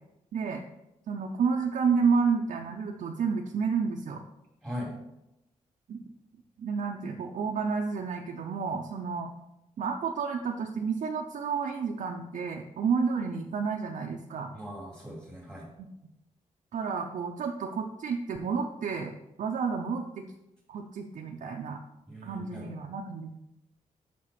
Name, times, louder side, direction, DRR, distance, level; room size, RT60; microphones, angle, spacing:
voice 1, 0.3-0.6 1.1-4.2 5.9-6.0 6.6-9.3 9.8-14.5 15.8-15.9 16.7-20.2 20.7-21.8 22.2-23.4, right 5 dB, 70° right, 1 dB, 0.6 m, -30 dB
voice 2, 4.6-4.9 14.5-15.7 22.1-22.7, equal, 5° left, -4 dB, 2.5 m, -39 dB
5.9 x 5.8 x 4.8 m, 0.89 s
wide cardioid pair, 175°, 14 cm